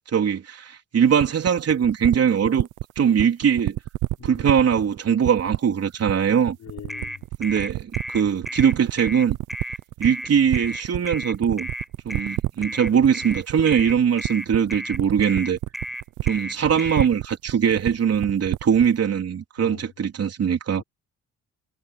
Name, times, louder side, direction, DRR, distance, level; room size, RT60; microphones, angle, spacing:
voice 1, 0.1-2.7 3.0-3.8 4.2-6.6 7.4-9.4 10.0-11.7 12.1-15.6 16.2-20.8, right 7 dB, 55° right, 3.8 m, -21 dB
sound 1, 1.2-18.9, right 16 dB, 80° right, 0.7 m, -28 dB
voice 2, 4.2-4.6 6.6-7.2 12.1-12.2 19.6-19.9 20.8-20.9, left 9 dB, 65° left, 5.7 m, -42 dB
sound 2, 6.9-17.1, equal, ahead, 7.3 m, -33 dB
cardioid pair, 90°, 30 cm